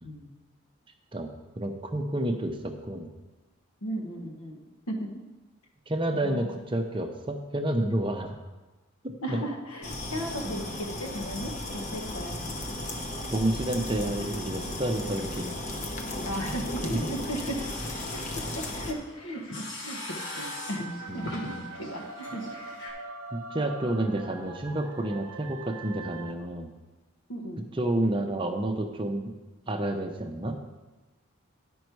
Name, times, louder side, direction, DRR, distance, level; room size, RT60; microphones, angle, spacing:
voice 1, 1.6-3.1 5.9-8.4 9.0-9.4 10.4-10.5 12.9-13.1 13.3-15.5 16.5-16.6 21.1-21.7 23.3-26.7 27.7-29.3 29.7-30.6, right 1 dB, 25° right, 5 dB, 0.6 m, -30 dB
voice 2, 3.8-4.6 4.9-5.1 6.1-6.5 9.2-12.5 16.2-17.6 18.1-18.4 18.7-20.0 20.4-22.4 27.3-27.6, right 1 dB, 85° left, 2 dB, 1.3 m, -36 dB
sound 1, 9.8-18.9, left 1 dB, 35° left, 0.8 m, -35 dB
sound 2, 16.9-22.9, left 2 dB, 55° left, 1.5 m, -42 dB
sound 3, 20.1-26.3, right 3 dB, 80° right, 0.7 m, -42 dB
10.5 x 5.3 x 4.6 m, 1.2 s
head